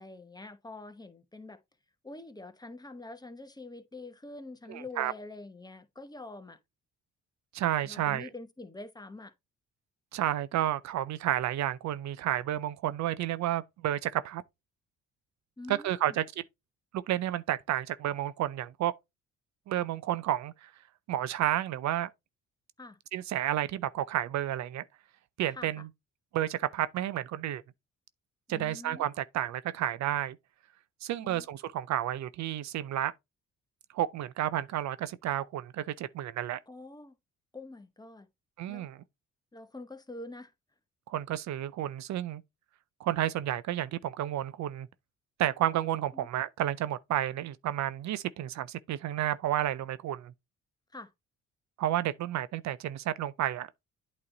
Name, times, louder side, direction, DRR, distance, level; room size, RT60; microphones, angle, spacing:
voice 1, 0.0-1.6 2.0-6.6 7.8-9.3 15.6-16.2 22.8-23.0 25.5-25.8 28.5-29.1 31.2-31.5 36.7-37.2 37.5-38.3 38.7-38.9 39.5-40.5 46.1-46.3 50.9-51.1, left 2 dB, 15° left, 1.0 m, -45 dB
voice 2, 4.7-5.1 7.5-8.3 10.1-14.4 15.7-16.3 16.9-18.9 19.7-20.7 21.1-22.1 23.1-24.8 25.4-25.9 26.3-27.6 28.5-30.4 31.0-33.1 33.9-36.6 38.6-39.0 41.1-42.4 43.0-44.9 45.4-50.3 51.8-53.7, right 12 dB, 65° right, 0.5 m, -31 dB
8.6 x 3.1 x 3.8 m
cardioid pair, 90°, 30 cm